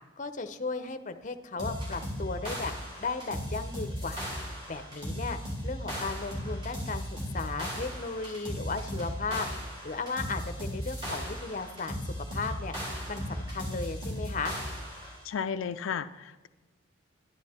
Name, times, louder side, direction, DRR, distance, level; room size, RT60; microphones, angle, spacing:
voice 1, 0.2-2.7 3.0-4.2 4.7-9.5 9.8-12.8 13.1-14.6, left 4 dB, 40° left, 8 dB, 0.6 m, -35 dB
sound 1, 1.6-15.2, equal, 25° right, 3.8 m, -36 dB
voice 2, 15.2-16.5, left 7 dB, 85° left, 9 dB, 0.4 m, -33 dB
11.0 x 10.5 x 4.3 m, 1.2 s
head